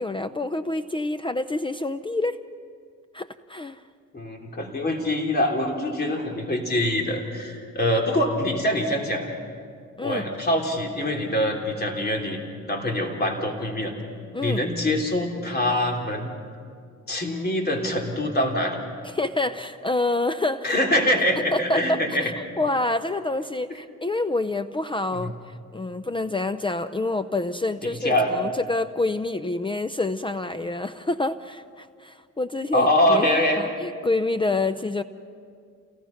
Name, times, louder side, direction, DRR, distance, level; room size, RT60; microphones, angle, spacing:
voice 1, 0.0-2.4 3.1-3.8 10.0-10.3 14.3-14.6 19.0-20.8 21.5-22.3 22.6-33.3 33.6-35.0, left 2 dB, 15° left, 13 dB, 0.6 m, -27 dB
voice 2, 4.1-9.3 10.0-12.4 12.7-13.9 14.4-16.3 17.1-18.8 20.6-22.3 25.1-25.3 27.8-28.3 32.7-33.6, left 1 dB, 30° left, 1 dB, 3.4 m, -24 dB
28.5 x 18.0 x 5.9 m, 2.2 s
cardioid pair, 90°, 30 cm